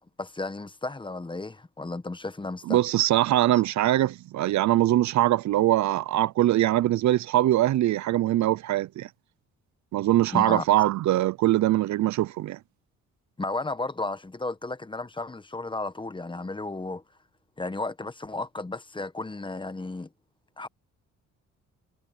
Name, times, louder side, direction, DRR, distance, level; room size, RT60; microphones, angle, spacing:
voice 1, 0.2-2.8 10.3-10.6 13.4-17.0 17.6-20.1 20.6-20.7, left 2 dB, 15° left, 1.3 m, -33 dB
voice 2, 2.7-9.1 9.9-12.6, right 14 dB, 65° right, 0.6 m, -22 dB
cardioid pair, 90°, 30 cm